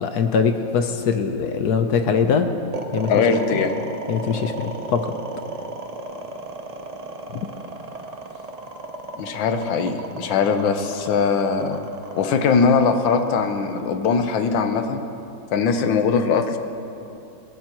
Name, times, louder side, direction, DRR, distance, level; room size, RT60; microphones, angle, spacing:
voice 1, 0.0-2.5 2.9-3.6 4.1-5.1 7.3-7.5, left 6 dB, 65° left, 7 dB, 1.1 m, -22 dB
sound 1, 2.7-15.0, right 3 dB, 60° right, 0.4 m, -34 dB
voice 2, 3.1-3.7 9.2-11.8 12.1-15.0 15.5-16.6, left 5 dB, 80° left, 7 dB, 1.6 m, -21 dB
21.5 x 16.5 x 3.0 m, 2.8 s
omnidirectional pair, 2.1 m